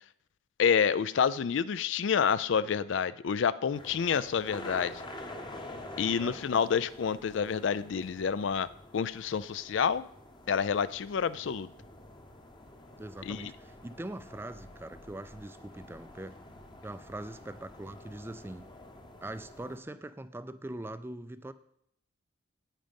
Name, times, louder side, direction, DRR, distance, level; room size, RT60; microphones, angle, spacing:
voice 1, 0.6-5.0 6.0-8.7 8.9-10.0 10.5-11.7 13.2-13.5, left 7 dB, 65° left, 17 dB, 0.4 m, -28 dB
sound 1, 3.7-19.8, left 1 dB, 25° left, 0.9 m, -48 dB
voice 2, 13.0-16.3 16.8-18.6 19.2-21.5, right 1 dB, 10° right, 13 dB, 0.4 m, -42 dB
9.1 x 8.8 x 5.3 m, 0.71 s
head